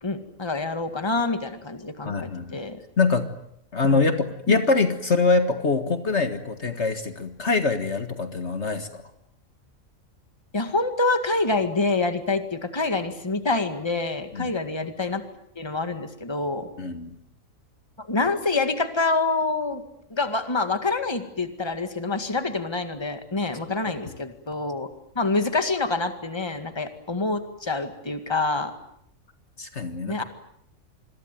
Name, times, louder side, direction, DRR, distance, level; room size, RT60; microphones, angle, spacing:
voice 1, 0.0-2.8 3.9-4.0 4.5-4.6 10.5-15.2 15.6-16.7 18.0-19.8 20.1-24.9 25.2-28.7 30.1-30.2, left 3 dB, 20° left, 8 dB, 2.0 m, -26 dB
voice 2, 2.1-2.6 3.0-3.3 3.7-9.0 14.3-14.5 16.8-17.1 29.6-30.2, left 4 dB, 55° left, 8 dB, 1.9 m, -24 dB
27.5 x 22.0 x 9.3 m, 0.75 s
omnidirectional pair, 1.4 m